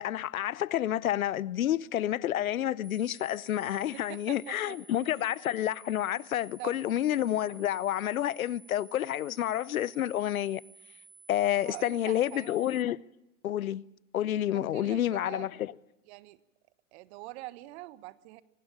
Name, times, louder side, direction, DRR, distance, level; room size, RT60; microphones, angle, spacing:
voice 1, 0.0-10.6 11.3-13.0 13.4-13.8 14.1-15.7, left 12 dB, 80° left, 0.8 m, -29 dB
sound 1, 2.8-12.8, right 5 dB, 15° right, 2.2 m, -55 dB
voice 2, 3.9-4.8 5.2-5.3 6.6-6.8 11.5-12.5 14.4-15.5 16.1-16.4 16.9-18.4, right 18 dB, 50° right, 1.5 m, -44 dB
25.0 x 19.5 x 8.8 m
hypercardioid pair, 110°, 41 cm